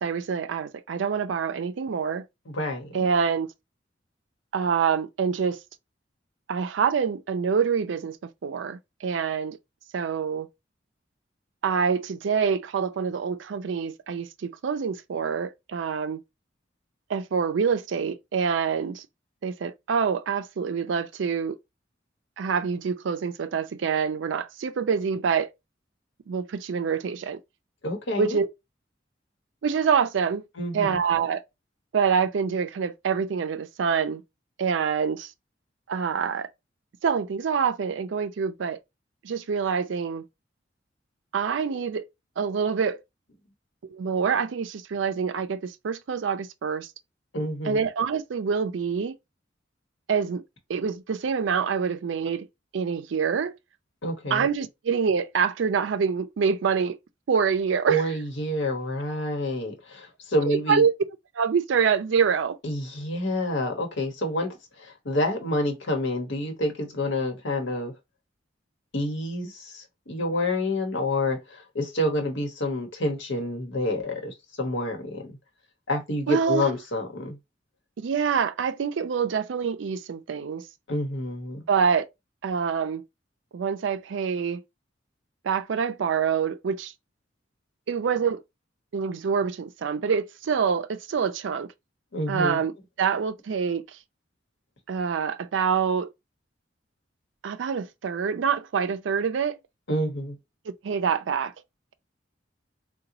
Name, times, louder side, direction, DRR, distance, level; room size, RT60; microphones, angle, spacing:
voice 1, 0.0-2.2 2.9-3.5 4.5-5.6 6.5-9.6 9.9-10.5 11.6-16.2 17.1-19.1 19.4-21.6 22.4-25.5 26.3-27.4 28.2-28.5 29.6-30.4 30.7-31.4 31.9-34.2 34.6-35.3 35.9-36.5 37.0-38.8 39.2-40.3 41.3-42.1 42.4-43.0 43.8-46.9 47.6-49.2 50.1-50.4 50.7-52.5 52.7-53.5 54.3-57.0 57.3-58.1 60.5-60.9 61.4-62.6 76.3-76.6 78.0-80.7 81.7-82.1 82.4-83.1 83.5-84.6 85.4-86.9 87.9-88.4 88.9-91.7 92.3-92.7 93.0-93.9 94.9-96.1 97.4-99.6 100.7-101.5, right 6 dB, 70° right, 0.4 m, -26 dB
voice 2, 2.5-3.1 27.8-28.4 30.6-31.0 47.3-47.8 54.0-54.5 57.9-60.8 62.6-64.5 64.8-67.9 68.9-75.3 75.9-77.4 80.9-81.6 92.1-92.6 99.9-100.4, left 1 dB, 70° left, 1.1 m, -28 dB
3.8 x 2.2 x 2.9 m
head